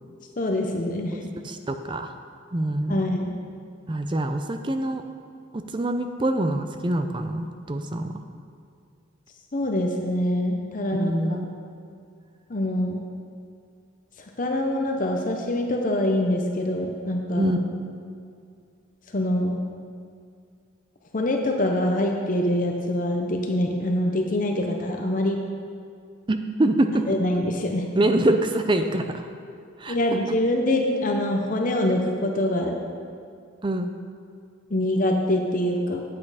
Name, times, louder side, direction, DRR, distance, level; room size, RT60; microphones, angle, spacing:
voice 1, 0.4-1.2 2.9-3.4 9.5-11.4 12.5-13.0 14.4-17.5 19.1-19.6 21.1-25.4 27.1-27.9 29.9-32.8 34.7-36.0, left 1 dB, 40° left, 2 dB, 0.7 m, -24 dB
voice 2, 1.4-2.1 2.5-3.0 3.9-5.0 5.5-8.1 10.9-11.5 17.4-17.7 26.3-27.1 27.9-29.3 29.8-30.0 33.6-33.9, right 1 dB, 25° right, 7 dB, 0.5 m, -25 dB
8.6 x 8.6 x 4.9 m, 2.3 s
head